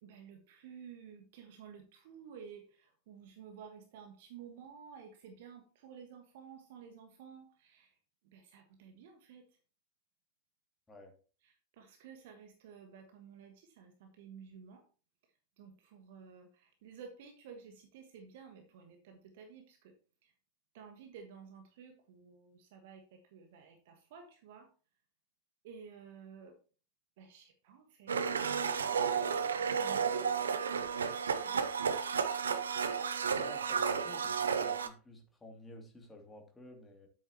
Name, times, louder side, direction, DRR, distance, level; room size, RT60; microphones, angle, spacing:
voice 1, 0.0-7.9 8.2-9.6 11.4-14.8 15.6-20.0 20.2-20.3 20.7-24.7 25.6-26.6 27.2-28.1 28.4-30.3 31.3-31.8, right 6 dB, 50° right, 5 dB, 1.4 m, -53 dB
Domestic sounds home sounds, 28.1-34.9, right 6 dB, 70° right, 0.8 m, -32 dB
voice 2, 33.4-37.1, left 2 dB, 10° left, 2 dB, 2.5 m, -52 dB
10.5 x 8.4 x 2.9 m, 0.37 s
figure-of-eight pair, 90°, 0 cm